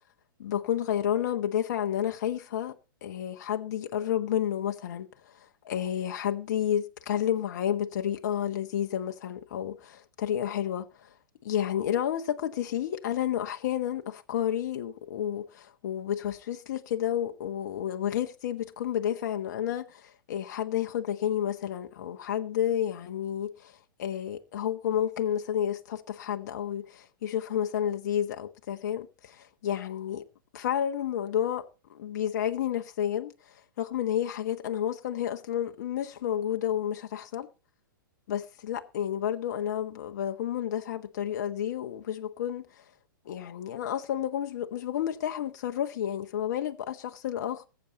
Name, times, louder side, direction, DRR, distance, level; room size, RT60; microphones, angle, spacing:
voice 1, 0.4-11.1 11.4-30.2 30.5-37.5 38.3-42.8 43.2-47.7, left 10 dB, 50° left, 1.3 m, -31 dB
21.0 x 8.4 x 4.1 m
figure-of-eight pair, 110°, 11 cm